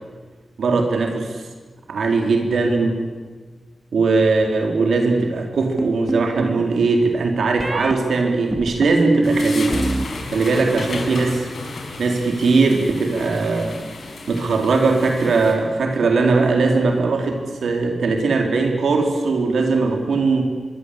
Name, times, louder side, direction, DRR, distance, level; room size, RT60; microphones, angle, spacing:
voice 1, 0.6-1.2 1.9-3.0 3.9-9.8 10.3-11.5 12.0-13.8 14.3-20.4, right 3 dB, 90° right, 3 dB, 3.9 m, -19 dB
sound 1, 5.8-6.6 7.6-7.9 8.5-10.1 10.3-10.9, right 2 dB, 25° right, 1.9 m, -23 dB
sound 2, 9.2-15.5, left 3 dB, 75° left, 5.8 m, -33 dB
25.5 x 23.5 x 8.3 m, 1.4 s
wide cardioid pair, 90°, 0 cm